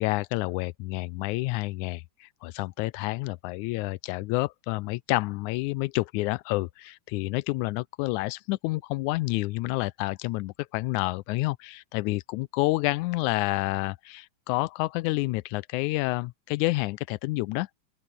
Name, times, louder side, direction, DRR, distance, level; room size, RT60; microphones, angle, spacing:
voice 1, 0.0-17.7, left 20 dB, 90° left, 2.0 m, -29 dB
open air
omnidirectional pair, 3.4 m